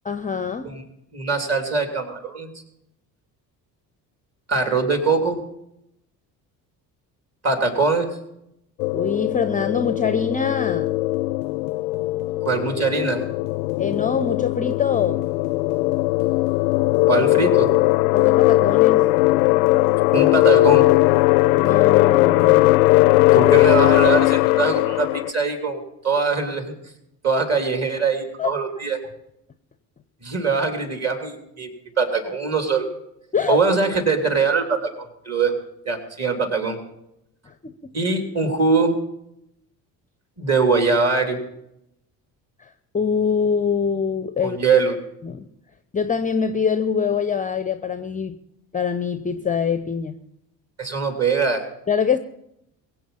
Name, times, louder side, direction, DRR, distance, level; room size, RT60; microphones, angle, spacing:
voice 1, 0.0-0.7 8.9-10.9 13.8-15.3 18.1-19.0 21.6-23.2 28.4-28.5 33.3-33.6 37.5-37.7 42.6-44.6 45.2-45.5 45.9-48.4 48.7-50.2 51.9-52.2, left 6 dB, 15° left, 11 dB, 0.6 m, -24 dB
voice 2, 1.1-2.5 4.5-5.4 7.4-8.1 12.4-13.2 17.1-17.7 20.1-20.8 23.3-26.7 27.2-29.0 30.2-31.7 32.0-32.9 33.5-34.9 35.2-35.5 35.8-36.8 37.9-39.0 40.4-41.4 44.4-45.0 50.8-51.6, right 4 dB, 30° right, 5 dB, 3.1 m, -22 dB
sound 1, 8.8-25.3, left 20 dB, 60° left, 0.5 m, -18 dB
22.5 x 8.2 x 5.4 m, 0.81 s
figure-of-eight pair, 50°, 50 cm